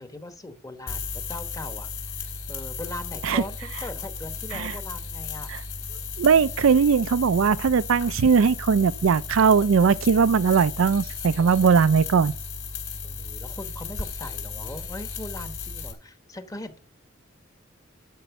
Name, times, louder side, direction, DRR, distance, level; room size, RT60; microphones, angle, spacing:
voice 1, 0.0-5.5 11.3-11.8 13.0-16.8, left 1 dB, 20° left, 1.1 m, -40 dB
sound 1, 0.9-15.9, left 4 dB, 70° left, 3.8 m, -35 dB
voice 2, 6.2-12.3, right 6 dB, 80° right, 0.4 m, -19 dB
11.5 x 5.5 x 6.9 m
head